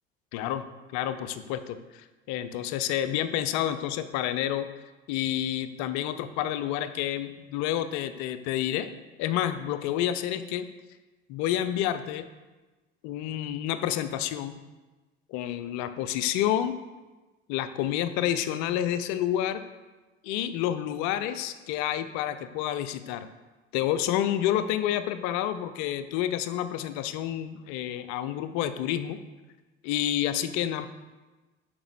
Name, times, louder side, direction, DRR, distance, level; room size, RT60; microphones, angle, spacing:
voice 1, 0.3-0.6 0.9-4.7 5.1-8.9 9.2-10.6 11.3-12.3 13.0-14.6 15.3-16.7 17.5-19.6 20.2-23.3 23.7-29.2 29.8-30.9, left 11 dB, 60° left, 11 dB, 0.7 m, -29 dB
8.8 x 6.0 x 6.5 m, 1.2 s
figure-of-eight pair, 55°, 31 cm